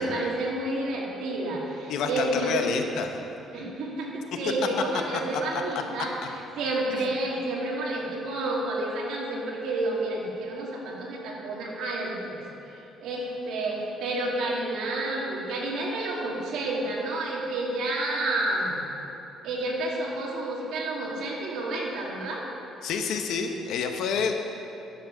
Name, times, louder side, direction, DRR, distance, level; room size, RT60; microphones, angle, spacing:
voice 1, 0.0-2.7 3.5-18.8 19.4-22.4, right 2 dB, 70° right, -3 dB, 2.3 m, -30 dB
voice 2, 1.9-3.1 5.3-5.6 7.0-7.1 22.8-24.3, left 6 dB, 65° left, 5 dB, 1.0 m, -29 dB
11.0 x 7.6 x 6.6 m, 2.9 s
cardioid pair, 165°, 0 cm